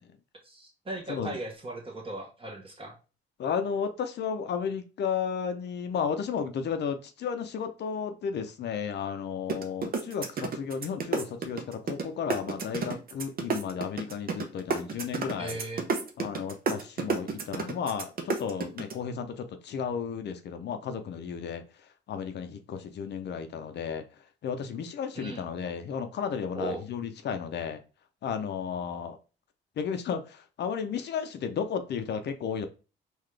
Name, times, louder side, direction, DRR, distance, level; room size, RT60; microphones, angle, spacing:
voice 1, 0.4-3.0 15.4-15.8 25.1-25.4 26.5-26.8, right 2 dB, 25° right, 0 dB, 1.1 m, -38 dB
voice 2, 3.4-15.6 16.2-21.6 22.1-24.0 24.4-27.8 28.2-29.2 29.8-32.7, left 7 dB, 60° left, 8 dB, 0.6 m, -33 dB
sound 1, 9.5-12.0 12.3-18.9, right 4 dB, 50° right, 0.7 m, -30 dB
3.9 x 2.4 x 3.2 m, 0.34 s
cardioid pair, 90°, 20 cm